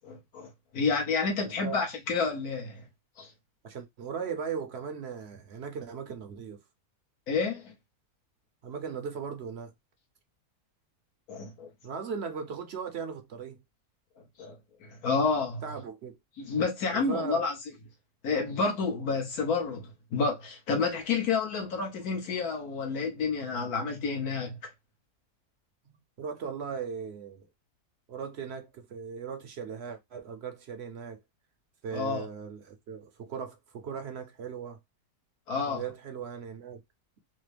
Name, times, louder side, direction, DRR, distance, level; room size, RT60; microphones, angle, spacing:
voice 1, 0.0-2.8 3.2-3.3 7.3-7.7 11.3-11.7 14.4-15.6 16.4-17.5 18.2-24.6 31.9-32.2 35.5-35.8, left 4 dB, 80° left, 1.5 m, -30 dB
voice 2, 3.6-6.6 8.6-9.7 11.8-13.6 15.6-16.2 16.9-17.4 25.9-27.5 28.1-31.2 31.8-34.8 35.7-36.8, right 6 dB, 60° right, 0.7 m, -38 dB
4.1 x 2.1 x 3.3 m
omnidirectional pair, 1.6 m